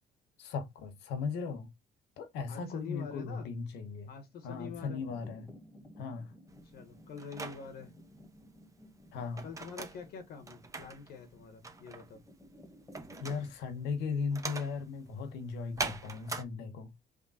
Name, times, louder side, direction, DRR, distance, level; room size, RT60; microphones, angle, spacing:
voice 1, 0.4-1.7 2.2-4.1 4.4-5.5 6.0-6.3 9.1-9.4 13.2-16.9, left 5 dB, 85° left, 1.2 m, -37 dB
voice 2, 2.5-3.5 4.1-5.0 6.6-7.9 9.4-12.2, left 6 dB, 65° left, 1.1 m, -45 dB
sound 1, 4.3-13.5, equal, 15° left, 1.5 m, -56 dB
sound 2, 6.5-16.4, right 3 dB, 20° right, 0.9 m, -43 dB
3.7 x 3.3 x 4.2 m
cardioid pair, 110°, 17 cm